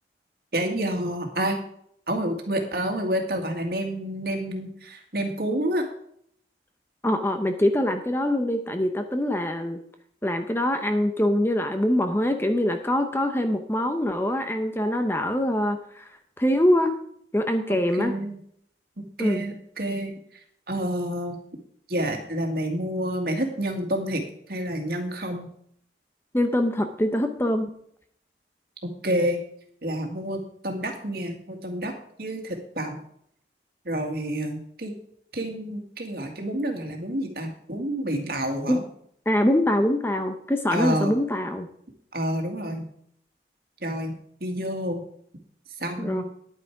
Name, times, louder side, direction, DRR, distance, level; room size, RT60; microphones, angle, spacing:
voice 1, 0.5-1.6 2.1-5.8 17.9-18.4 19.0-20.2 20.7-21.4 21.9-24.2 24.5-25.5 28.8-29.4 29.8-33.0 33.8-34.9 35.3-38.8 40.7-41.1 42.1-42.9 43.8-44.2 44.4-45.0 45.8-46.2, right 1 dB, 55° right, 3 dB, 2.1 m, -29 dB
voice 2, 7.0-9.8 10.2-17.0 17.3-18.1 19.2-19.4 26.3-27.7 38.7-38.8 39.3-41.7 46.0-46.2, left 1 dB, 15° left, 6 dB, 0.7 m, -24 dB
10.5 x 9.1 x 4.7 m, 0.66 s
head